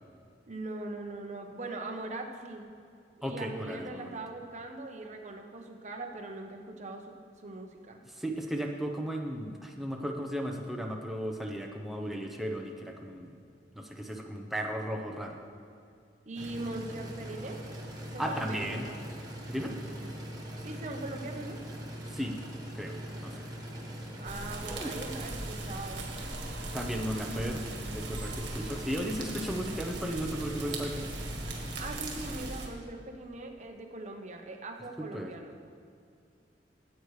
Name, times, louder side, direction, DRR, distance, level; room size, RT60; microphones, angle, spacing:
voice 1, 0.5-2.7 3.2-8.0 16.3-17.6 18.1-19.0 20.0-20.1 20.6-21.6 24.2-26.1 27.2-28.1 31.8-35.6, right 2 dB, 40° right, 3 dB, 0.8 m, -41 dB
voice 2, 3.2-4.2 8.1-13.3 13.7-15.4 18.2-18.8 19.5-19.8 22.1-22.4 22.7-23.5 24.7-24.9 26.7-27.6 27.9-31.1 35.1-35.3, equal, ahead, 1 dB, 0.7 m, -35 dB
sound 1, 16.3-32.5, equal, 20° right, 1.2 m, -42 dB
sound 2, 24.2-32.7, right 2 dB, 75° right, 1.5 m, -40 dB
15.0 x 8.2 x 3.2 m, 2.4 s
head